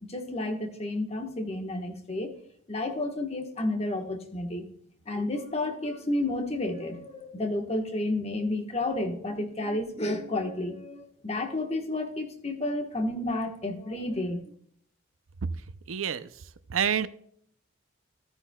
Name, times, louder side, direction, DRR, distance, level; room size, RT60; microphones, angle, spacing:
voice 1, 0.1-2.3 2.7-4.7 5.1-14.4, left 2 dB, 30° left, 4 dB, 1.3 m, -31 dB
voice 2, 15.9-16.3 16.7-17.1, right 8 dB, 80° right, 14 dB, 0.6 m, -27 dB
14.0 x 9.9 x 2.3 m, 0.64 s
head